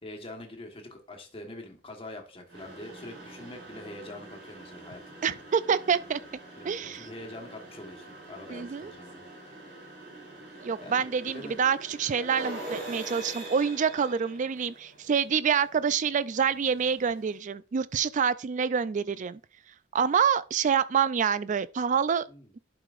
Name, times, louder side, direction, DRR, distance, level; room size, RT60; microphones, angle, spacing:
voice 1, 0.0-5.4 6.5-9.2 10.8-11.0 11.3-11.5 12.2-12.3 22.3-22.5, left 1 dB, 30° left, 1.3 m, -44 dB
sound 1, 2.5-17.4, right 1 dB, 70° right, 3.3 m, -45 dB
voice 2, 5.2-6.2 6.6-7.1 8.5-8.9 10.6-19.4 19.9-22.3, right 7 dB, 40° right, 0.3 m, -27 dB
11.0 x 4.9 x 2.5 m
head